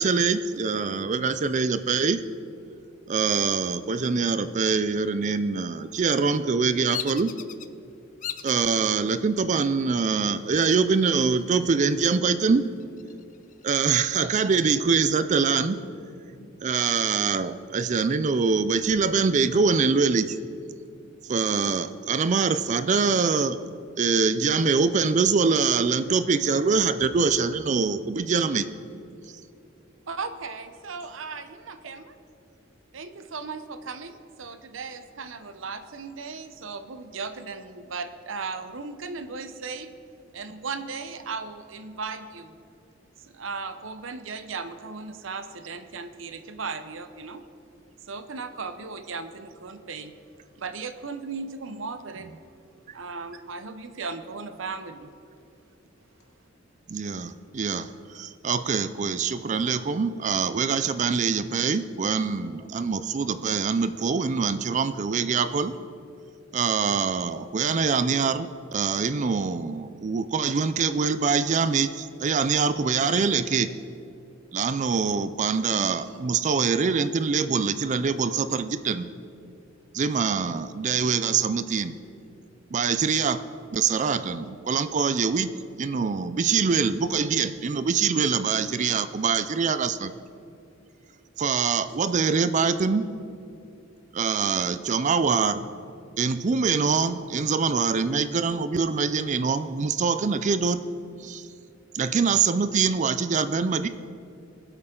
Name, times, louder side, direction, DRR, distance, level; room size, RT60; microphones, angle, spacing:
voice 1, 0.0-2.2 3.1-7.3 8.4-12.7 13.6-15.8 16.6-20.4 21.3-23.6 24.0-28.6 56.9-57.9 58.1-65.7 66.5-73.7 74.5-79.1 79.9-81.9 82.7-83.4 83.7-85.5 85.8-90.1 91.4-93.1 94.1-95.6 96.2-100.8 101.2-101.4 101.9-103.9, right 5 dB, 40° right, 12 dB, 0.4 m, -24 dB
voice 2, 1.0-2.2 4.0-4.4 5.6-5.8 13.1-13.2 16.0-16.5 18.6-19.2 20.7-21.0 23.6-23.7 28.6-29.0 83.7-83.8 86.1-86.3 93.0-93.8 96.1-96.2 101.0-101.5, left 1 dB, 60° left, 0 dB, 2.1 m, -54 dB
Bird vocalization bird call bird song, 6.9-7.7 8.2-8.6 9.2-9.7 10.9-11.7 12.0-12.1 12.6-14.0, left 10 dB, 40° left, 0.4 m, -38 dB
voice 3, 30.1-32.2 32.9-39.9 40.3-42.6 43.2-47.4 48.0-50.2 50.6-52.3 52.9-55.2, right 4 dB, 75° right, 10 dB, 0.8 m, -36 dB
20.5 x 8.1 x 3.8 m, 2.6 s
head